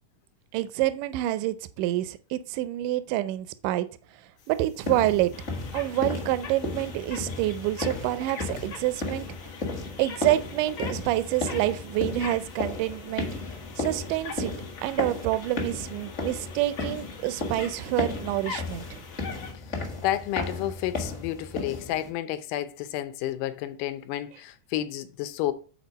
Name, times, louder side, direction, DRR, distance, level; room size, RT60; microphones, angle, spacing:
voice 1, 0.5-3.9 4.5-5.3 5.7-9.3 10.0-13.3 13.8-14.5 14.8-19.0, right 15 dB, 80° right, 2.0 m, -27 dB
sound 1, 4.4-19.5, left 5 dB, 55° left, 1.5 m, -43 dB
sound 2, 4.8-22.1, left 3 dB, 35° left, 1.2 m, -35 dB
voice 2, 20.0-25.5, left 13 dB, 80° left, 2.2 m, -31 dB
7.3 x 4.4 x 5.2 m
omnidirectional pair, 3.8 m